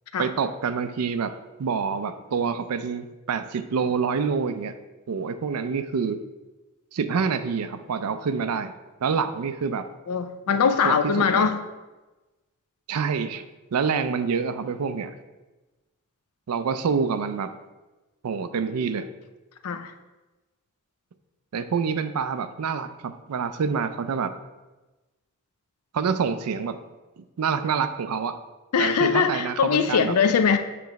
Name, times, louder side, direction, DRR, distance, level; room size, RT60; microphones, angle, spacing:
voice 1, 0.2-1.3 1.6-4.7 5.1-6.2 6.9-8.7 9.0-9.9 10.8-11.5 12.9-15.1 16.5-17.5 18.2-19.1 21.5-24.3 25.9-26.8 27.4-28.4 28.8-30.1, right 5 dB, 85° right, 11 dB, 0.4 m, -27 dB
voice 2, 10.1-11.6 19.6-19.9 28.7-30.6, left 6 dB, 80° left, 8 dB, 0.4 m, -21 dB
6.9 x 3.0 x 5.2 m, 1.1 s
head